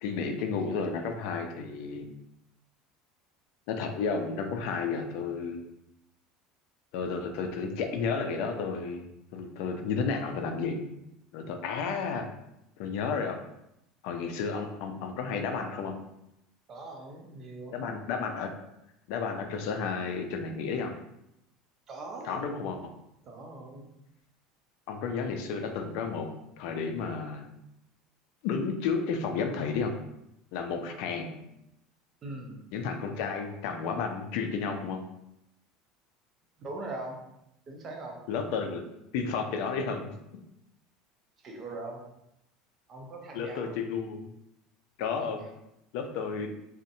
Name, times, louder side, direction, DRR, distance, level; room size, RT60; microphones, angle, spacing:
voice 1, 0.0-2.1 3.7-5.6 6.9-9.0 9.3-10.8 11.3-12.3 12.8-13.4 14.0-16.0 17.7-18.5 19.1-20.9 22.2-22.8 24.9-26.3 26.6-27.5 28.4-30.0 30.5-31.4 32.7-35.0 38.3-38.8 39.1-40.2 43.3-44.3 45.0-45.4 45.9-46.5, left 5 dB, 70° left, 5 dB, 0.3 m, -32 dB
voice 2, 16.7-17.8 21.9-22.4 23.2-23.9 32.2-32.7 36.6-37.2 37.7-38.2 41.4-42.0 42.9-43.8 45.1-45.6, right 2 dB, 35° right, 1 dB, 0.5 m, -41 dB
2.6 x 2.1 x 2.6 m, 0.83 s
supercardioid pair, 125°, 0 cm